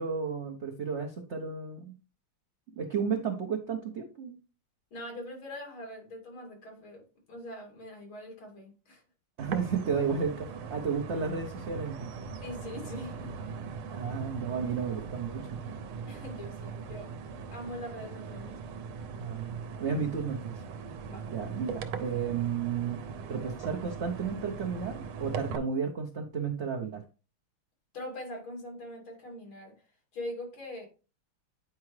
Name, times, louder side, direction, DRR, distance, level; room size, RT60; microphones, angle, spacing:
voice 1, 0.0-1.9 2.8-4.4 9.4-12.3 13.9-15.6 19.2-20.6 21.3-23.0 23.3-27.0, right 6 dB, 70° right, 0.6 m, -33 dB
voice 2, 4.9-7.0 7.3-9.0 12.4-13.3 16.1-17.1 17.5-18.6 21.0-21.3 27.9-29.9 30.1-30.9, left 1 dB, 75° left, 3.4 m, -42 dB
sound 1, 9.4-25.6, right 5 dB, 90° right, 1.6 m, -40 dB
9.5 x 4.7 x 3.1 m
omnidirectional pair, 2.3 m